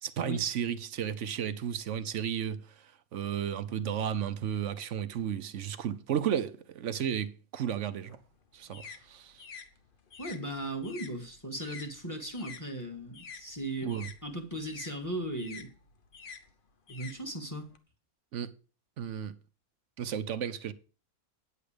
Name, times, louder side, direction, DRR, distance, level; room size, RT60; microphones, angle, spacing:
voice 1, 0.0-8.2 8.5-9.4 13.8-14.1 18.3-18.5 19.0-19.3 20.0-20.7, right 9 dB, 60° right, 1.0 m, -33 dB
sound 1, 7.9-12.6 12.9-17.8, left 5 dB, 40° left, 1.0 m, -49 dB
voice 2, 10.2-13.9 14.2-15.7 16.9-17.7, right 1 dB, 10° left, 1.7 m, -37 dB
9.6 x 8.3 x 5.0 m
omnidirectional pair, 1.5 m